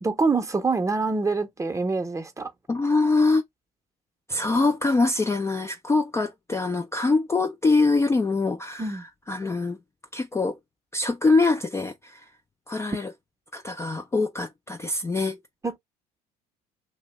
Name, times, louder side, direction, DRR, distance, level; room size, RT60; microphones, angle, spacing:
voice 1, 0.0-2.5 8.8-9.0 15.6-15.8, right 3 dB, 15° right, 0.7 m, -25 dB
voice 2, 2.7-3.4 4.3-9.8 10.1-10.6 10.9-12.3 12.7-13.1 13.5-15.4, left 3 dB, 15° left, 0.3 m, -24 dB
2.7 x 2.1 x 3.2 m
supercardioid pair, 80°, 19 cm